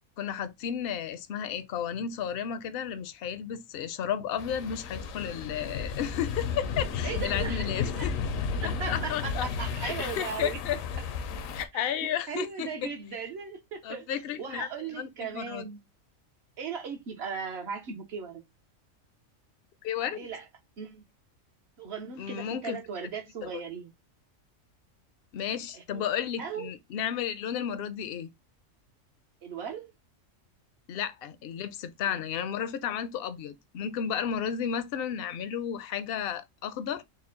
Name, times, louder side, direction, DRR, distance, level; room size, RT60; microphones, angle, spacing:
voice 1, 0.2-8.1 8.6-9.5 9.8-11.0 11.5-12.9 13.8-15.7 19.8-20.3 22.2-22.8 23.5-23.6 25.3-28.3 30.9-37.0, left 9 dB, 65° left, 0.6 m, -33 dB
sound 1, 4.4-11.7, left 5 dB, 80° left, 1.0 m, -33 dB
voice 2, 7.0-8.1 8.6-10.6 11.7-11.9 12.3-14.1 14.4-15.8 16.6-18.4 20.1-20.4 20.8-21.0 21.8-23.9 25.7-26.0 26.4-26.7 29.4-29.9 32.1-32.2, right 6 dB, 55° right, 0.9 m, -37 dB
4.2 x 2.0 x 3.7 m
omnidirectional pair, 1.4 m